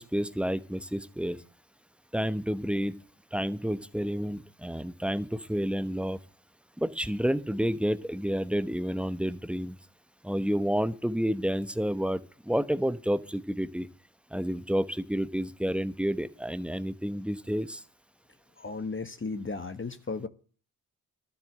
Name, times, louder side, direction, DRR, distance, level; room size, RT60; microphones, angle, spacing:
voice 1, 0.0-1.4 2.1-3.0 3.3-6.2 6.8-9.8 10.2-12.2 12.5-13.9 14.3-17.8, equal, 5° right, 13 dB, 1.1 m, -30 dB
voice 2, 18.6-20.3, left 4 dB, 30° left, 10 dB, 1.5 m, -35 dB
12.5 x 7.4 x 8.9 m, 0.40 s
supercardioid pair, 55°, 39 cm